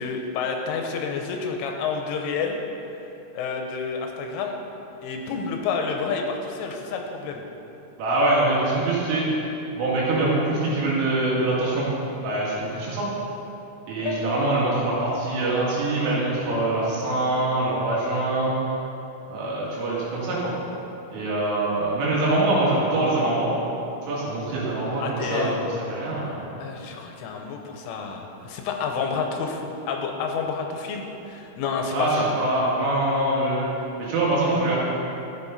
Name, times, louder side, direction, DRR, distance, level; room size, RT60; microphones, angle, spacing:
voice 1, 0.0-2.6 3.3-4.6 5.0-7.4 14.0-14.5 25.0-25.6 26.6-29.6 29.9-32.3, left 5 dB, 85° left, 3 dB, 3.3 m, -29 dB
voice 2, 8.0-9.3 9.8-11.9 12.2-13.1 13.9-18.5 19.3-20.5 21.1-23.5 24.1-26.4 31.9-33.7 34.0-34.8, right 2 dB, 80° right, -6 dB, 4.8 m, -24 dB
13.0 x 8.6 x 4.2 m, 2.9 s
omnidirectional pair, 5.7 m